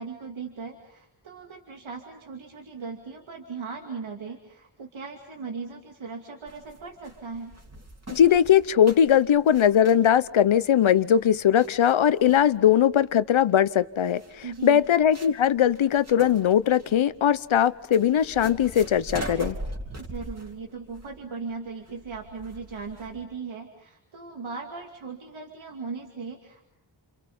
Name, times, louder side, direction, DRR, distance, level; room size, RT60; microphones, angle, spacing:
voice 1, 0.0-7.6 14.4-14.8 20.0-26.7, right 5 dB, 90° right, 2.7 m, -38 dB
sound 1, 6.5-23.2, right 1 dB, 35° right, 3.4 m, -41 dB
voice 2, 8.1-14.2 14.6-19.6, left 9 dB, 90° left, 0.9 m, -20 dB
29.5 x 27.5 x 5.5 m
wide cardioid pair, 145°, 46 cm